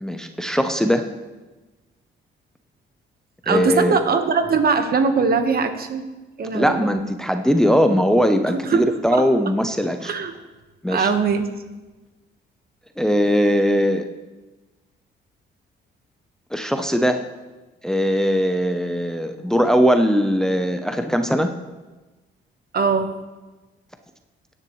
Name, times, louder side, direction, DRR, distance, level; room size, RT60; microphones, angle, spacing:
voice 1, 0.0-1.1 3.5-4.0 6.5-10.1 10.8-11.1 13.0-14.0 16.5-17.2 17.8-21.5, equal, 5° left, 6 dB, 0.7 m, -20 dB
voice 2, 3.4-6.0 6.4-6.9 8.7-8.9 10.0-10.3 10.9-11.5 22.7-23.1, right 5 dB, 50° right, 7 dB, 1.3 m, -20 dB
17.0 x 9.9 x 3.2 m, 1.2 s
cardioid pair, 90°, 20 cm